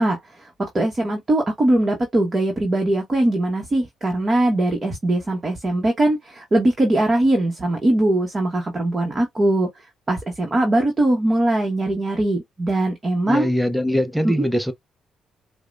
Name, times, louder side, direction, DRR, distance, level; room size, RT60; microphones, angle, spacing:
voice 1, 0.0-13.5 14.2-14.5, right 1 dB, 30° right, 1.0 m, -21 dB
voice 2, 13.3-14.7, equal, ahead, 0.5 m, -22 dB
4.7 x 2.1 x 2.4 m
cardioid pair, 90°, 0 cm